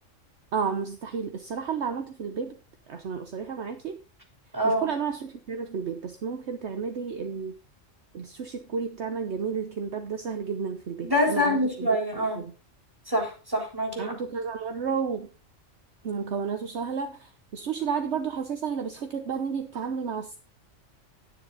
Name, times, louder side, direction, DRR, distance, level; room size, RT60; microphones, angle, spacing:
voice 1, 0.5-2.5 2.9-4.0 4.6-7.5 8.1-12.0 12.4-12.5 14.0-15.3 16.0-20.4, right 6 dB, 60° right, 7 dB, 1.2 m, -32 dB
voice 2, 4.5-4.9 11.0-12.4 13.1-14.1, equal, 15° right, 1 dB, 3.8 m, -25 dB
10.0 x 10.0 x 3.9 m, 0.32 s
omnidirectional pair, 1.3 m